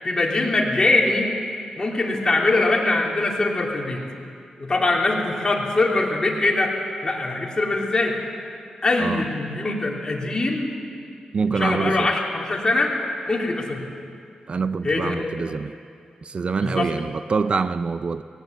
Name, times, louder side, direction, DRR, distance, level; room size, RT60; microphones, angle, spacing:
voice 1, 0.0-1.3 1.8-4.0 4.6-6.7 7.0-8.2 8.8-10.7 11.5-12.9 13.3-13.8 14.8-15.3 16.6-16.9, left 2 dB, 30° left, 3.1 m, -22 dB
voice 2, 11.3-12.1 14.5-15.7 16.2-18.2, right 5 dB, 45° right, 0.4 m, -25 dB
19.5 x 18.0 x 7.9 m
wide cardioid pair, 120°, 3 cm